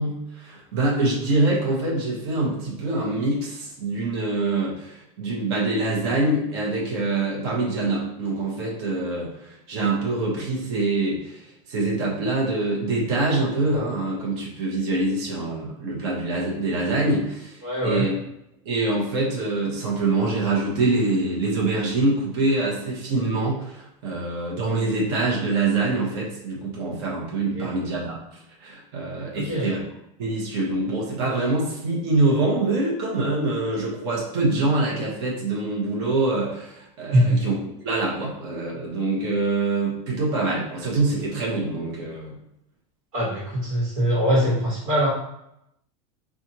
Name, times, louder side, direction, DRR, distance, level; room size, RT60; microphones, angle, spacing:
voice 1, 0.0-11.4 11.7-18.1 18.6-28.2 28.6-29.8 30.2-37.6 37.8-42.4, right 2 dB, 55° right, -3 dB, 1.1 m, -25 dB
voice 2, 17.6-18.1 27.5-27.7 29.3-29.7 37.1-37.4 43.1-45.1, equal, 80° right, -5 dB, 1.4 m, -22 dB
4.3 x 2.5 x 2.8 m, 0.80 s
supercardioid pair, 175°, 17 cm